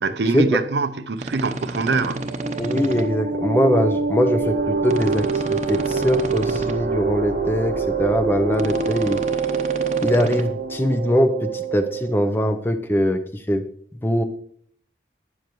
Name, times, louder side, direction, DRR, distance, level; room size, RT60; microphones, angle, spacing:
voice 1, 0.0-2.3, right 3 dB, 75° right, 0.6 m, -24 dB
sound 1, 1.2-3.0 4.8-6.7 8.5-10.4, right 2 dB, 40° right, 0.8 m, -31 dB
sound 2, 1.9-12.2, right 4 dB, 60° right, 1.1 m, -25 dB
voice 2, 2.6-9.2 10.0-13.2 13.5-13.6 14.0-14.2, equal, 10° left, 0.6 m, -22 dB
12.0 x 9.4 x 3.1 m
head